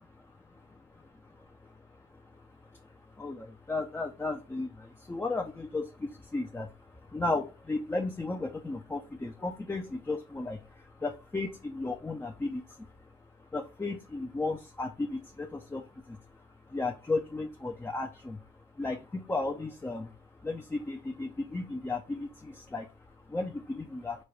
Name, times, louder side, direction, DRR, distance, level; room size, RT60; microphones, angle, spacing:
voice 1, 0.4-24.2, left 3 dB, 10° left, 3 dB, 0.5 m, -35 dB
5.2 x 2.2 x 3.1 m, 0.29 s
cardioid pair, 90°, 20 cm